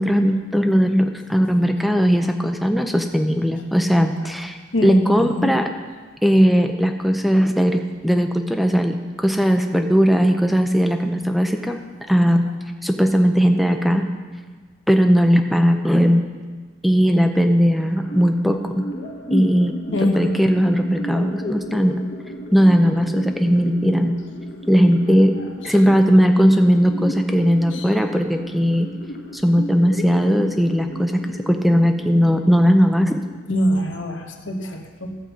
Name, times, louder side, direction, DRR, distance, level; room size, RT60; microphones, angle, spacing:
voice 1, 0.0-5.7 6.2-11.8 12.1-12.5 12.8-14.0 14.9-16.2 16.8-18.8 19.3-21.9 22.5-24.1 24.7-25.3 25.6-28.9 29.3-33.2, equal, ahead, 5 dB, 0.6 m, -18 dB
voice 2, 4.7-5.5 19.9-20.4 27.7-27.9 33.5-35.2, equal, 80° left, 3 dB, 1.3 m, -23 dB
sound 1, 18.0-33.9, equal, 50° left, 1.4 m, -34 dB
14.0 x 5.4 x 7.3 m, 1.4 s
head